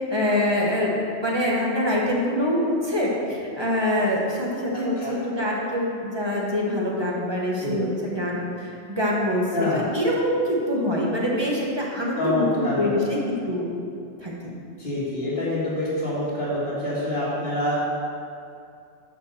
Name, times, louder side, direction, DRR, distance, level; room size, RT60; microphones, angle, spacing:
voice 1, 0.1-13.7 14.2-14.5, left 1 dB, 25° right, -4 dB, 1.3 m, -25 dB
voice 2, 4.7-5.2 7.6-7.8 9.5-9.9 12.2-13.1 14.8-17.8, left 1 dB, 50° left, -13 dB, 2.2 m, -27 dB
6.7 x 5.4 x 6.7 m, 2.4 s
omnidirectional pair, 1.2 m